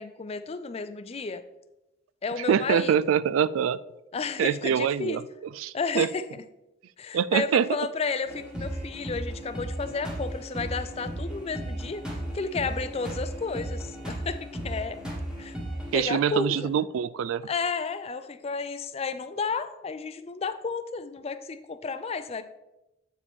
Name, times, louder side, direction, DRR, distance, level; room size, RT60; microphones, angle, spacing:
voice 1, 0.0-1.4 2.2-3.1 4.1-5.2 5.7-6.2 7.0-12.0 12.3-15.0 15.4-15.6 15.9-16.7 17.5-22.4, left 4 dB, 30° left, 12 dB, 0.4 m, -32 dB
voice 2, 2.5-3.8 4.4-5.2 5.6-6.1 7.1-7.7 15.9-17.4, right 8 dB, 90° right, 18 dB, 0.3 m, -24 dB
sound 1, 8.2-16.0, right 1 dB, 5° right, 1.5 m, -35 dB
8.0 x 5.0 x 3.6 m, 0.93 s
head